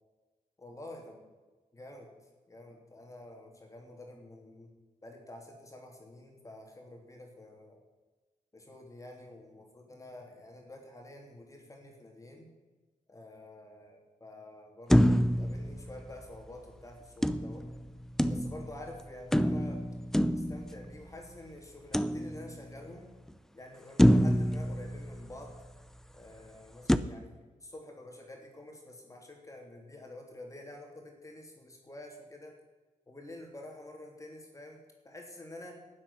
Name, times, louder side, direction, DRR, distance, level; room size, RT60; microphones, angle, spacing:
voice 1, 0.6-1.2 1.7-2.1 2.5-4.7 5.0-7.8 8.5-12.5 13.1-17.7 18.3-19.8 20.2-23.1 23.5-25.6 26.1-32.6 33.1-35.8, left 1 dB, 25° left, 1 dB, 3.3 m, -49 dB
sound 1, 14.9-16.5 17.2-18.8 19.3-21.2 21.9-22.8 23.3-23.4 24.0-25.7 26.9-27.0, equal, 5° left, 0.6 m, -27 dB
12.5 x 7.5 x 10.0 m, 1.3 s
cardioid pair, 85°, 14 cm